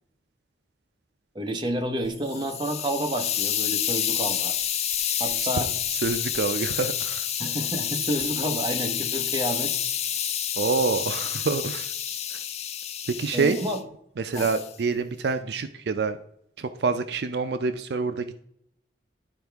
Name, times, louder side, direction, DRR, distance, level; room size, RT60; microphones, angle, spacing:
voice 1, 1.3-4.6 5.2-5.7 7.4-9.7 10.1-10.3 13.3-13.8 14.3-14.5, right 1 dB, 25° right, 4 dB, 0.9 m, -30 dB
Hiss, 2.0-13.8 14.3-14.7, left 10 dB, 35° left, 0.4 m, -29 dB
voice 2, 6.0-7.2 10.6-11.9 13.2-13.6 14.2-16.2 16.6-18.4, right 4 dB, 70° right, 9 dB, 0.4 m, -26 dB
11.0 x 4.4 x 3.4 m, 0.74 s
head